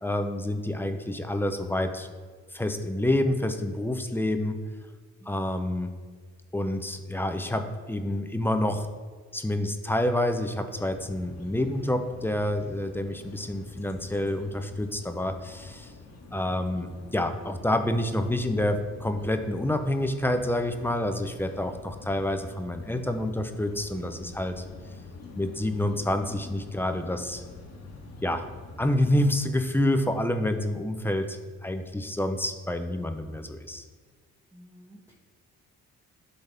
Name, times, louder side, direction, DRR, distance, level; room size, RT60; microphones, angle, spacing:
voice 1, 0.0-2.1 2.5-4.6 5.3-5.9 6.5-8.9 9.3-15.9 16.3-24.6 25.4-27.4 28.2-28.5 28.8-33.8, left 1 dB, 5° left, 6 dB, 0.6 m, -28 dB
sound 1, 10.8-29.5, left 3 dB, 60° left, 1.3 m, -47 dB
voice 2, 34.5-35.1, equal, 10° right, -7 dB, 1.4 m, -53 dB
12.0 x 4.1 x 3.4 m, 1.5 s
cardioid pair, 90°, 30 cm